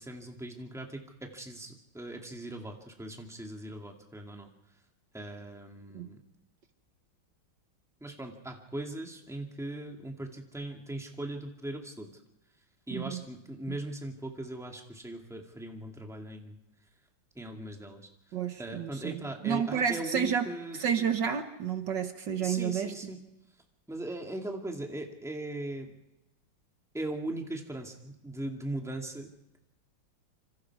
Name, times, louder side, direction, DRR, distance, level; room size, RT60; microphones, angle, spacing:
voice 1, 0.0-4.5 5.1-6.2 8.0-12.1 12.9-16.6 17.4-18.1 18.6-20.8 22.4-23.2 23.9-25.9 26.9-29.3, right 1 dB, ahead, 2 dB, 2.1 m, -39 dB
voice 2, 12.9-13.2 18.3-20.5 20.8-22.9, right 7 dB, 65° right, 7 dB, 1.8 m, -30 dB
27.5 x 25.5 x 4.8 m, 0.91 s
omnidirectional pair, 2.2 m